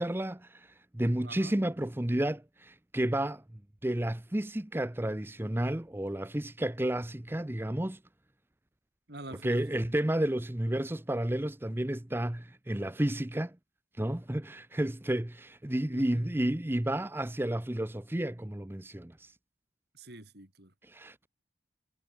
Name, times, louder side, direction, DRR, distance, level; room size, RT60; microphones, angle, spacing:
voice 1, 0.0-3.4 3.8-8.0 9.4-13.6 14.0-19.3 20.8-21.3, right 1 dB, 10° right, 0.6 m, -31 dB
voice 2, 1.2-1.5 9.1-9.8 15.9-16.3 19.9-20.7, right 1 dB, 60° right, 4.1 m, -46 dB
head